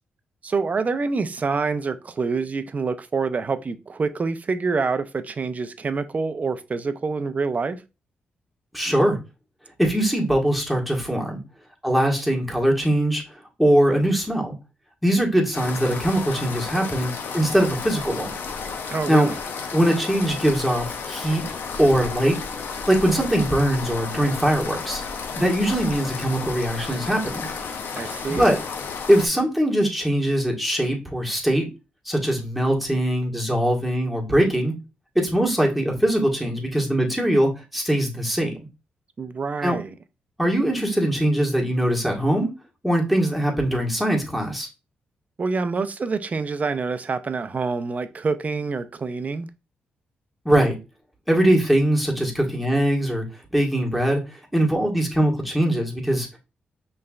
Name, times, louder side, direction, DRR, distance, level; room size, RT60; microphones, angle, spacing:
voice 1, 0.4-7.8 18.9-19.4 28.0-28.5 39.2-39.9 45.4-49.5, right 4 dB, 40° right, 0.5 m, -26 dB
voice 2, 8.7-9.2 9.8-11.4 11.8-13.2 13.6-14.5 15.0-18.3 19.1-19.3 19.7-21.4 21.8-22.4 22.9-25.0 25.3-27.5 28.3-28.6 29.1-31.7 32.0-34.7 35.1-38.6 39.6-39.8 40.4-42.5 42.8-44.7 50.4-50.8 51.3-53.2 53.5-56.4, right 1 dB, ahead, 1.6 m, -21 dB
sound 1, 15.5-29.3, left 5 dB, 75° left, 0.7 m, -32 dB
5.5 x 3.3 x 2.4 m
cardioid pair, 65°, 4 cm